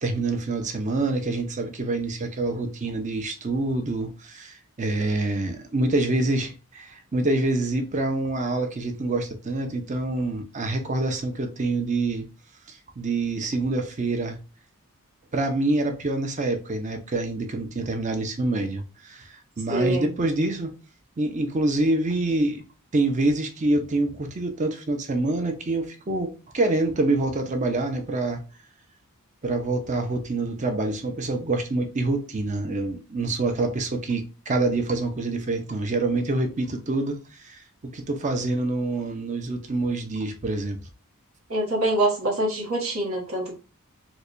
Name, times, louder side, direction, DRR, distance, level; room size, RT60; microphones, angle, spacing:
voice 1, 0.0-12.3 12.7-14.4 15.3-19.3 19.6-20.7 21.2-22.6 22.9-28.4 29.4-37.2 37.4-40.8, right 2 dB, 35° right, 0.6 m, -26 dB
voice 2, 19.7-20.2 41.5-43.5, right 1 dB, 70° right, 1.2 m, -25 dB
4.5 x 2.2 x 2.5 m
head